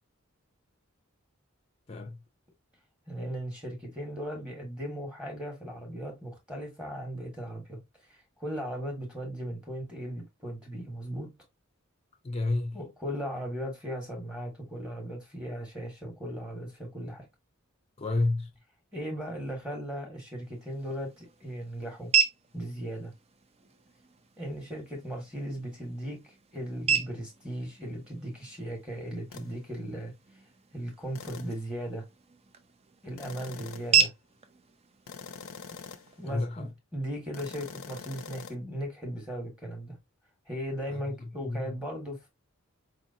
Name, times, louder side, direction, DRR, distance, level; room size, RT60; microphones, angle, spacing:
voice 1, 3.1-7.8 8.1-11.3 12.7-17.2 18.9-22.1 22.5-23.1 24.4-30.1 30.7-32.0 33.0-34.1 36.2-40.0 40.5-42.3, equal, 5° right, 1.2 m, -37 dB
voice 2, 12.2-12.8 18.0-18.5 36.3-36.7 40.9-41.0 41.5-41.7, left 2 dB, 30° left, 0.5 m, -30 dB
sound 1, 20.4-36.4, right 7 dB, 30° right, 0.5 m, -34 dB
sound 2, 29.3-29.5 31.1-31.6 33.2-34.0 35.1-36.2 37.3-38.5, left 5 dB, 80° left, 0.6 m, -44 dB
4.6 x 3.0 x 2.6 m
head